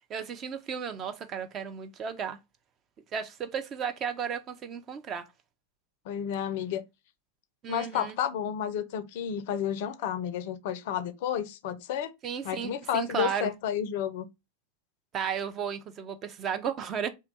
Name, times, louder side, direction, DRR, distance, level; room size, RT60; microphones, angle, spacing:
voice 1, 0.1-2.4 3.1-5.2 7.6-8.2 12.2-13.5 15.1-17.1, right 7 dB, 30° right, 0.4 m, -34 dB
voice 2, 6.1-6.8 7.7-12.1 12.4-14.3, left 9 dB, 50° left, 0.4 m, -31 dB
2.7 x 2.2 x 3.8 m
figure-of-eight pair, 90°, 0 cm